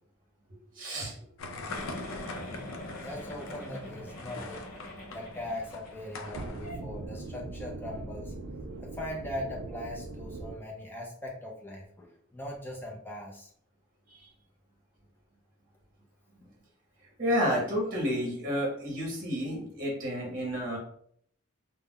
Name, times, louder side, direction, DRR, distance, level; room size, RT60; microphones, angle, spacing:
voice 1, 0.7-1.1 14.1-14.3 17.2-20.8, equal, 40° right, -2 dB, 0.8 m, -30 dB
sound 1, 1.4-6.7, left 3 dB, 70° left, 0.4 m, -42 dB
Giggle, 1.7-5.9 6.2-6.4 6.6-6.8, left 1 dB, 40° left, 0.8 m, -45 dB
voice 2, 3.0-4.6 5.1-8.3 8.8-13.5 16.4-16.5, left 1 dB, 10° left, -2 dB, 0.5 m, -40 dB
sound 2, 6.3-10.5, right 2 dB, 55° right, 0.3 m, -40 dB
2.3 x 2.1 x 3.5 m, 0.65 s
head